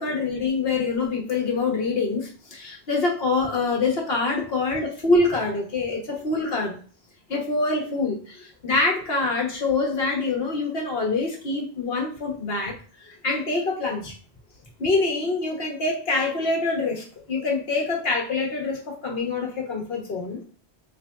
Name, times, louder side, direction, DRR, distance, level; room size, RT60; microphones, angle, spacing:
voice 1, 0.0-6.8 7.3-12.7 13.0-14.1 14.8-20.4, left 3 dB, 65° left, 0 dB, 1.2 m, -25 dB
4.0 x 3.3 x 2.3 m, 0.40 s
omnidirectional pair, 1.1 m